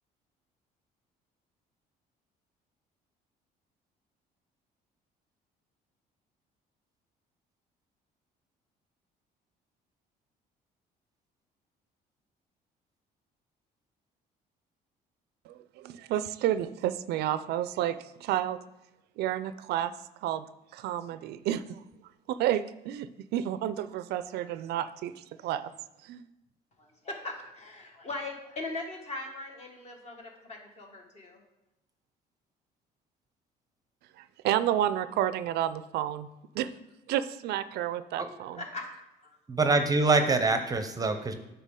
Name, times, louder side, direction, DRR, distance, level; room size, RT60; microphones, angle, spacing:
voice 1, 15.5-18.6 19.2-19.9 20.2-20.4 20.7-21.8 22.3-25.7 26.0-26.3 34.2-36.3 36.5-36.7 37.1-38.6, right 11 dB, 75° right, 13 dB, 0.4 m, -30 dB
voice 2, 26.8-31.4 38.6-38.9 39.2-39.4, left 2 dB, 40° left, 2 dB, 1.5 m, -40 dB
voice 3, 39.5-41.3, right 3 dB, 20° right, 8 dB, 0.6 m, -25 dB
8.2 x 5.5 x 3.7 m, 0.94 s
cardioid pair, 110°, 17 cm